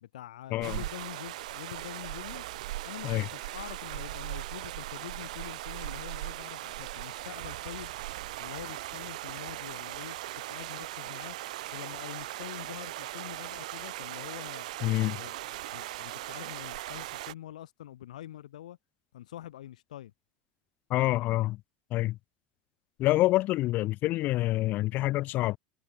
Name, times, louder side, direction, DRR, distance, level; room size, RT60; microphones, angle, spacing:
voice 1, 0.0-2.4 2.8-8.0 8.4-11.4 11.7-14.7 15.0-18.8 19.1-20.1, left 12 dB, 90° left, 2.6 m, -45 dB
sound 1, 0.6-17.3, right 16 dB, 80° right, 0.6 m, -39 dB
voice 2, 14.8-15.2 20.9-21.6 21.9-22.2 23.0-25.6, left 17 dB, 50° left, 0.3 m, -27 dB
supercardioid pair, 100°, 4 cm